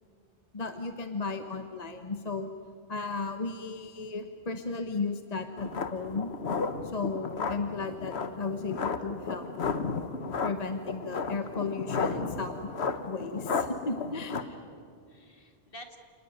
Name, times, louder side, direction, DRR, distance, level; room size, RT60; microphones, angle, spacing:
voice 1, 0.0-0.4 14.6-16.0, equal, 60° left, 5 dB, 2.4 m, -51 dB
voice 2, 0.5-2.5 2.9-6.3 6.9-9.5 10.4-12.5 13.1-14.4, left 4 dB, 40° left, 7 dB, 1.2 m, -34 dB
sound 1, 5.6-14.4, left 5 dB, 90° left, 1.4 m, -33 dB
28.0 x 19.5 x 9.3 m, 2.2 s
omnidirectional pair, 1.1 m